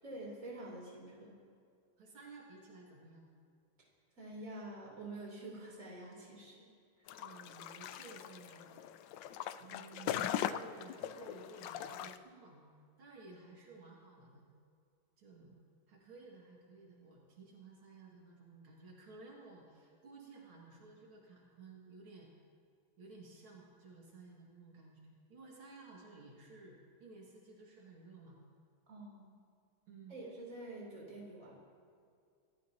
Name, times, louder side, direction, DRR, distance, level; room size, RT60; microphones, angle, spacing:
voice 1, 0.0-1.3 3.8-3.9 4.2-6.6 7.0-7.1 28.9-29.3 30.1-31.6, right 2 dB, 40° right, -4 dB, 3.9 m, -47 dB
voice 2, 2.0-3.3 7.2-8.7 9.0-12.7 13.0-14.5 15.2-15.6 15.9-22.3 23.0-28.4 29.9-30.2, right 3 dB, 85° right, -3 dB, 3.0 m, -55 dB
sound 1, 7.1-12.2, left 11 dB, 75° left, 1.1 m, -40 dB
25.5 x 14.5 x 2.9 m, 2.3 s
omnidirectional pair, 2.3 m